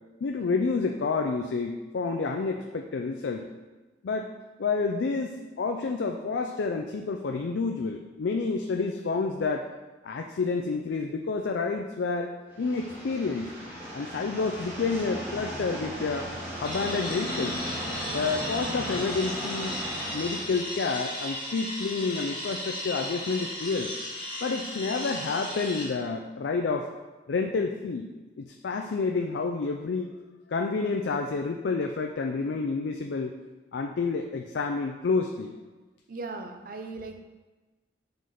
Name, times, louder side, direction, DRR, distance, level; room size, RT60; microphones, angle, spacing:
voice 1, 0.2-3.5 4.0-4.3 4.6-9.7 10.0-13.5 13.9-16.3 16.6-17.6 18.1-19.8 20.1-23.9 24.4-26.9 27.3-28.1 28.4-30.2 30.5-33.3 33.7-35.5, left 4 dB, 80° left, 4 dB, 0.4 m, -29 dB
sound 1, 12.5-20.6, equal, 15° right, 1.5 m, -36 dB
sound 2, 16.6-25.9, left 1 dB, 25° left, 1.5 m, -36 dB
voice 2, 36.1-37.2, right 3 dB, 50° right, 5 dB, 0.6 m, -38 dB
5.1 x 3.9 x 5.7 m, 1.2 s
head